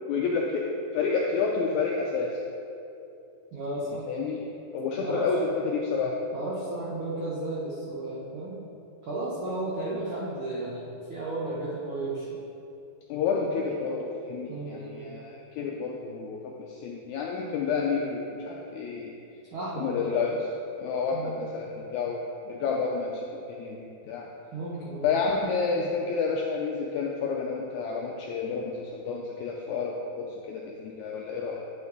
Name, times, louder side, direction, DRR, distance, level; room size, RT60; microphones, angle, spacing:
voice 1, 0.1-2.4 4.1-4.4 4.7-6.2 13.1-19.1 19.8-20.4 20.8-24.2 25.0-31.6, left 5 dB, 85° left, -1 dB, 1.7 m, -30 dB
voice 2, 3.5-4.1 5.0-5.3 6.3-8.6 9.0-12.3 14.5-15.1 19.5-20.1 21.1-21.4 24.5-25.1, right 2 dB, 85° right, -6 dB, 1.1 m, -34 dB
9.6 x 5.3 x 3.9 m, 2.7 s
omnidirectional pair, 3.9 m